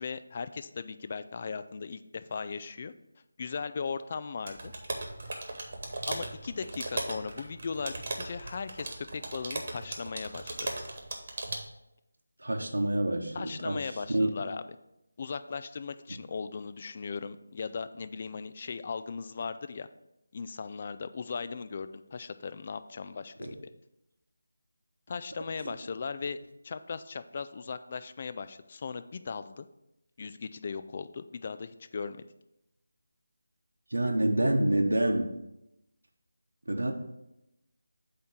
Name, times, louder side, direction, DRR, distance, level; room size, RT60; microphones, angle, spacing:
voice 1, 0.0-2.9 3.4-4.7 6.1-10.7 13.3-14.6 15.2-19.9 20.3-23.6 25.1-26.4 26.6-29.7 30.2-32.2, left 5 dB, 35° left, 12 dB, 0.4 m, -38 dB
sound 1, 4.5-11.6, right 2 dB, 45° right, 1.2 m, -37 dB
voice 2, 12.4-14.3 23.4-23.5 25.6-25.7 33.9-35.3 36.7-36.9, right 1 dB, 85° right, 2 dB, 0.9 m, -27 dB
8.3 x 2.9 x 6.0 m, 0.88 s
figure-of-eight pair, 165°, 0 cm